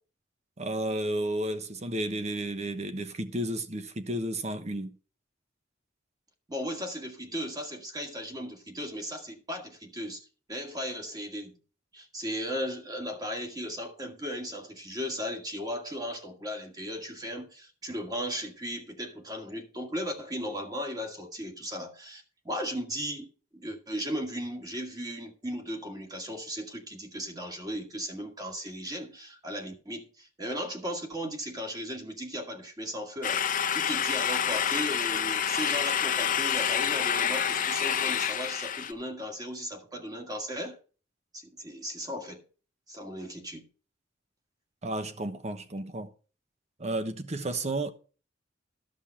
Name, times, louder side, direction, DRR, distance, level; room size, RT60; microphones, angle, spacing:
voice 1, 0.6-5.0 44.8-46.1 46.8-47.9, right 1 dB, 35° right, 1.1 m, -32 dB
voice 2, 6.5-11.5 11.9-40.8 41.3-42.4 42.9-43.7, equal, 20° right, 2.0 m, -36 dB
sound 1, 33.2-38.9, left 8 dB, 45° left, 0.8 m, -28 dB
13.5 x 5.5 x 5.5 m
head